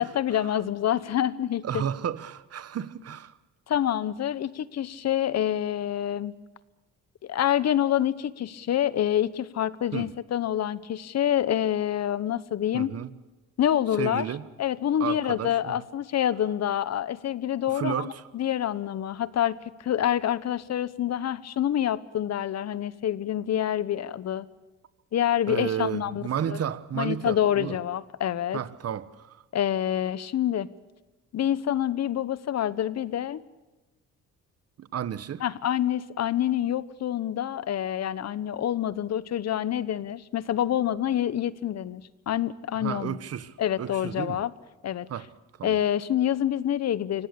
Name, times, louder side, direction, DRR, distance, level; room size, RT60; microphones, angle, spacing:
voice 1, 0.0-1.9 3.7-6.3 7.2-12.9 13.6-14.2 14.6-24.5 25.1-26.6 26.9-28.6 29.5-30.7 31.3-33.4 35.4-43.2 43.6-44.5 44.8-45.1 45.6-47.3, left 10 dB, 60° left, 1.0 m, -27 dB
voice 2, 1.6-3.4 9.9-10.1 12.7-13.1 14.0-14.4 15.0-15.8 17.7-18.3 25.5-27.8 28.5-29.4 34.8-35.4 42.7-44.4 45.1-45.3 45.6-45.8, right 9 dB, 55° right, 1.2 m, -32 dB
25.5 x 17.5 x 8.5 m
cardioid pair, 90°, 30 cm